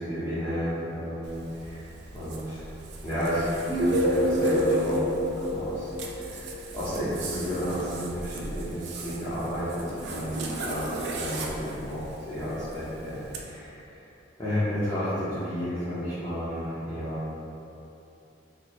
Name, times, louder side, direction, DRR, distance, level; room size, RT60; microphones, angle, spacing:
voice 1, 0.0-1.8 2.1-2.6 3.0-5.1 5.4-10.8 11.1-14.0 14.4-17.4, equal, 20° left, -13 dB, 0.7 m, -32 dB
Zipper (clothing), 1.2-13.4, right 3 dB, 55° right, 0.4 m, -39 dB
sound 1, 3.7-6.6, equal, 85° right, 1.2 m, -26 dB
4.2 x 2.1 x 2.9 m, 2.9 s
head